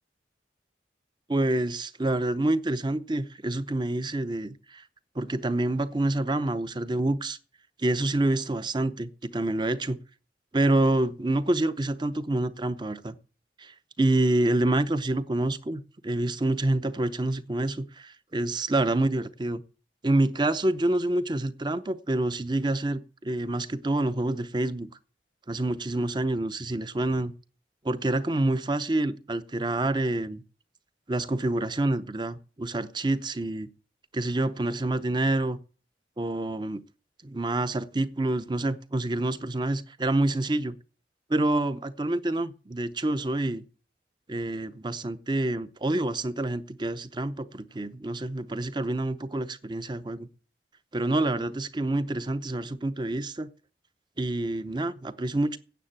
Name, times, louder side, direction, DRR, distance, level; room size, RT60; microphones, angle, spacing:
voice 1, 1.3-4.8 5.2-7.4 7.8-10.0 10.5-13.1 13.6-19.6 20.0-24.9 25.5-27.3 27.8-30.4 31.1-33.7 34.1-35.6 36.2-36.8 37.2-40.8 41.3-43.6 44.3-50.3 50.9-53.5 54.2-55.6, right 2 dB, 25° right, 0.7 m, -27 dB
9.3 x 7.5 x 8.7 m
head